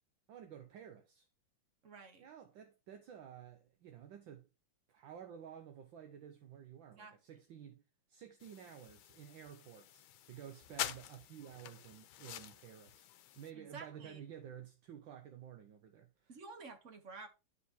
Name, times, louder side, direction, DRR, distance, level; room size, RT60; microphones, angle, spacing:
voice 1, 0.3-1.3 2.2-4.5 4.9-7.8 8.1-13.1 13.4-16.3, right 9 dB, 70° right, 1.6 m, -52 dB
voice 2, 1.8-2.3 6.9-7.1 13.5-14.2 16.3-17.3, right 4 dB, 45° right, 1.3 m, -51 dB
sound 1, 8.4-13.5, left 12 dB, 75° left, 1.4 m, -47 dB
11.5 x 5.0 x 3.6 m
omnidirectional pair, 2.3 m